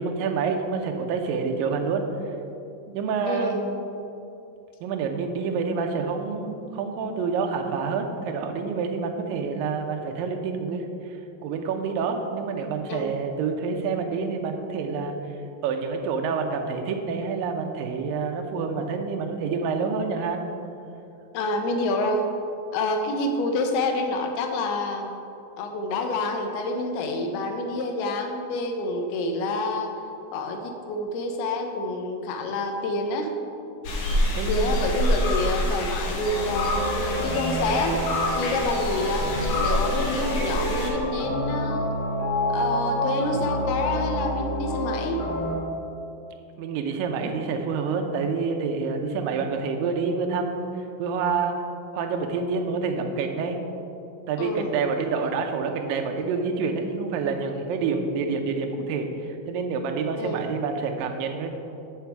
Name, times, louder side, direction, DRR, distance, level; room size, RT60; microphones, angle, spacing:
voice 1, 0.0-2.1 2.9-3.6 4.8-15.2 15.6-20.5 34.4-34.7 46.6-51.6 51.9-53.6 54.3-61.5, right 5 dB, 75° right, 4 dB, 2.2 m, -28 dB
voice 2, 3.3-3.7 12.9-13.1 21.3-22.3 22.7-25.1 25.6-29.9 30.3-33.3 34.5-38.0 38.4-41.9 42.5-45.3 54.4-54.7 60.2-60.4, left 2 dB, 90° left, 4 dB, 2.8 m, -28 dB
sound 1, 33.8-40.9, left 1 dB, 65° left, 2.3 m, -27 dB
sound 2, 36.2-45.5, equal, 35° left, 1.4 m, -28 dB
7.9 x 7.3 x 4.6 m, 2.7 s
omnidirectional pair, 4.4 m